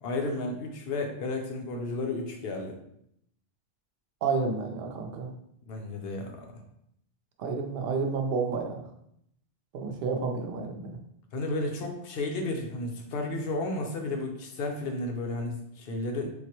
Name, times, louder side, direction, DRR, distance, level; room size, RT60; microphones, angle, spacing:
voice 1, 0.0-2.8 5.7-6.5 11.3-16.3, left 2 dB, 60° left, 2 dB, 0.8 m, -32 dB
voice 2, 4.2-5.3 7.4-8.8 9.7-11.0, right 4 dB, 60° right, 2 dB, 0.6 m, -30 dB
4.5 x 2.1 x 2.9 m, 0.74 s
omnidirectional pair, 1.3 m